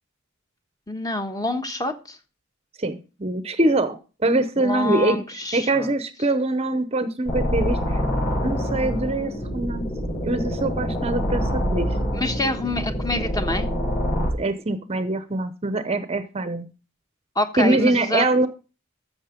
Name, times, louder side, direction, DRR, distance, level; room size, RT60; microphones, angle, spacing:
voice 1, 0.9-2.2 4.6-5.9 12.1-13.7 17.3-18.2, left 2 dB, 15° left, 7 dB, 1.2 m, -27 dB
voice 2, 2.8-5.2 5.5-7.8 8.4-9.9 10.2-11.9 14.4-16.7 17.6-18.5, right 2 dB, 30° right, 11 dB, 0.8 m, -23 dB
sound 1, 7.3-14.3, equal, 40° left, 7.4 m, -26 dB
14.0 x 6.5 x 5.1 m, 0.33 s
head